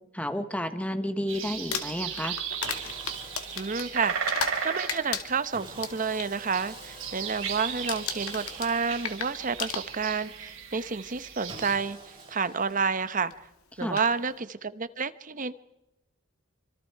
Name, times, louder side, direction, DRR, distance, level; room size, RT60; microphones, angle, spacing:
voice 1, 0.1-2.4 13.8-14.0, left 1 dB, 5° left, 10 dB, 1.1 m, -31 dB
sound 1, 1.3-11.7, right 7 dB, 60° right, 4.7 m, -36 dB
Crumpling crinkling, 1.5-4.6 4.9-6.3 6.7-7.0 7.3-7.6 7.9-10.3 11.2-11.3 13.3-13.4 13.8-14.1, left 7 dB, 90° left, 2.4 m, -35 dB
Sawing, 2.6-4.7 5.5-10.1 11.5-13.3, right 2 dB, 25° right, 7.8 m, -48 dB
voice 2, 3.6-13.3 13.8-15.5, right 5 dB, 40° right, 13 dB, 0.9 m, -30 dB
26.5 x 25.5 x 4.7 m, 0.92 s
head